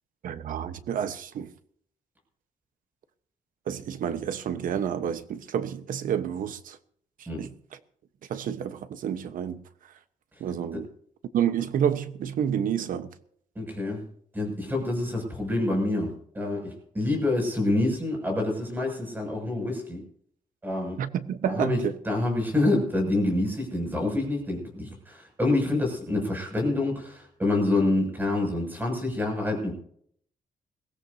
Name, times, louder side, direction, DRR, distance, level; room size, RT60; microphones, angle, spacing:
voice 1, 0.2-1.5 3.7-6.8 7.4-7.5 8.3-9.6 10.4-10.9 11.3-13.1 21.0-22.0, right 9 dB, 80° right, 1.1 m, -29 dB
voice 2, 13.5-14.0 14.3-20.0 20.6-21.0 21.4-29.7, left 2 dB, 15° right, 6.8 m, -27 dB
22.0 x 16.5 x 2.8 m
wide cardioid pair, 150°, 14 cm